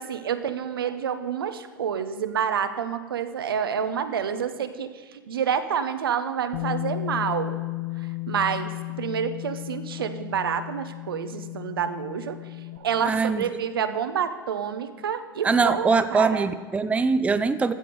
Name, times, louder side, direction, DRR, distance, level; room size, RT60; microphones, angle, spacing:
voice 1, 0.0-7.6 8.0-12.4 12.7-16.5, right 7 dB, 75° right, 9 dB, 0.8 m, -28 dB
Bass guitar, 6.5-12.8, left 23 dB, 55° left, 0.5 m, -34 dB
voice 2, 13.0-13.5 15.4-17.7, right 4 dB, 10° right, 11 dB, 0.5 m, -22 dB
15.0 x 6.7 x 5.3 m, 1.5 s
hypercardioid pair, 90°, 12 cm